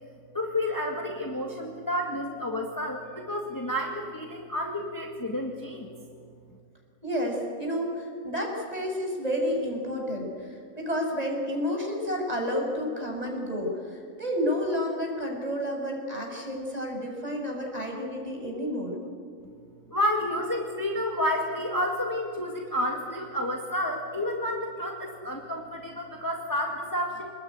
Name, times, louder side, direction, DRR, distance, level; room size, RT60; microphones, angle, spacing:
voice 1, 0.3-5.9 19.9-27.3, left 1 dB, 15° left, 1 dB, 2.1 m, -30 dB
voice 2, 7.0-18.9, equal, 25° right, 0 dB, 6.1 m, -30 dB
26.5 x 20.5 x 9.6 m, 2.2 s
omnidirectional pair, 1.5 m